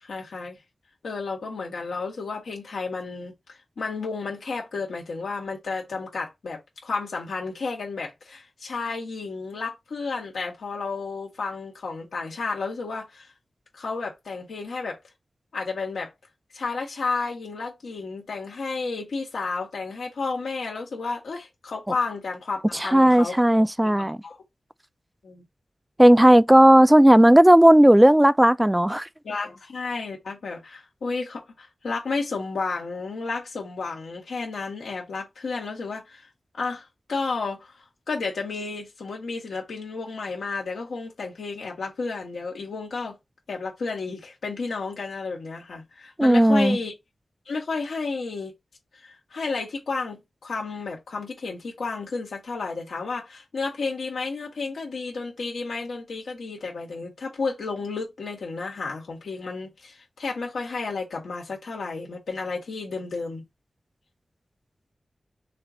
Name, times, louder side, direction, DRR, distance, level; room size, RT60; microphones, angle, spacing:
voice 1, 0.0-0.6 1.0-13.3 13.7-15.0 15.5-16.1 16.5-23.3 23.8-23.9 24.2-24.4 25.2-25.4 29.2-36.2 36.6-37.8 38.1-43.2 43.5-46.9 47.5-48.5 49.0-63.4, left 4 dB, 90° left, 2.2 m, -32 dB
voice 2, 22.7-24.2 26.0-29.1 46.2-46.8, right 1 dB, 10° right, 0.3 m, -15 dB
6.4 x 2.5 x 3.0 m
cardioid pair, 45°, 0 cm